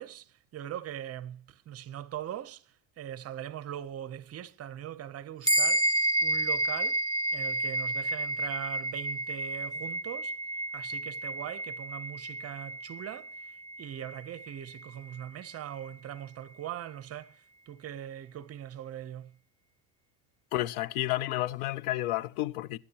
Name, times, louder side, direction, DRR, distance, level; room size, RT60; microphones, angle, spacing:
voice 1, 0.0-19.3, right 11 dB, 35° right, 0.8 m, -41 dB
sound 1, 5.4-15.2, right 1 dB, 10° left, 0.7 m, -31 dB
voice 2, 20.5-22.8, left 16 dB, 90° left, 0.7 m, -31 dB
20.5 x 10.0 x 2.9 m
supercardioid pair, 125°, 42 cm